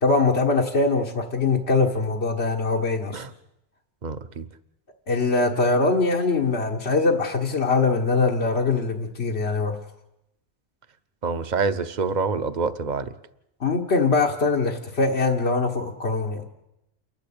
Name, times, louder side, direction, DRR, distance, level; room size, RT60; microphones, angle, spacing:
voice 1, 0.0-3.2 5.1-9.8 13.6-16.4, left 3 dB, 90° left, 1 dB, 1.8 m, -22 dB
voice 2, 4.0-4.4 11.2-13.1, right 4 dB, 45° right, 11 dB, 1.0 m, -26 dB
28.5 x 11.5 x 8.7 m, 0.87 s
omnidirectional pair, 1.1 m